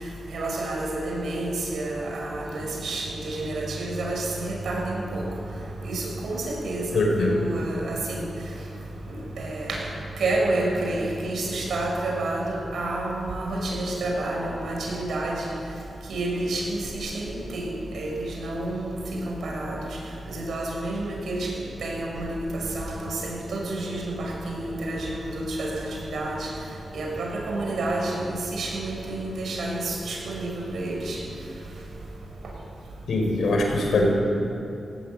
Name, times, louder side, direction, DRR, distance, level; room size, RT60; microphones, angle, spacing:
voice 1, 0.3-5.2 5.8-8.2 9.1-9.8 10.2-15.5 16.1-17.7 17.9-19.0 19.3-19.8 20.3-21.5 21.8-26.5 26.9-31.2, right 2 dB, 80° right, -1 dB, 6.6 m, -29 dB
voice 2, 6.9-7.4 33.1-34.1, left 2 dB, 75° left, 1 dB, 5.3 m, -22 dB
18.0 x 16.0 x 9.4 m, 2.8 s
cardioid pair, 90°, 0 cm